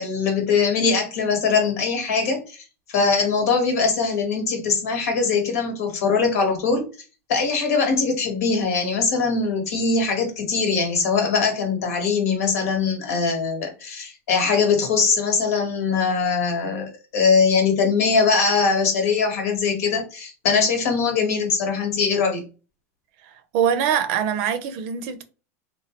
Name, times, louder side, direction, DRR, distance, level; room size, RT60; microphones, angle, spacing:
voice 1, 0.0-2.6 2.9-6.9 7.3-22.4, left 5 dB, 80° left, 1.2 m, -21 dB
voice 2, 23.5-25.2, right 8 dB, 60° right, 0.5 m, -23 dB
3.0 x 2.2 x 2.9 m
supercardioid pair, 135°, 8 cm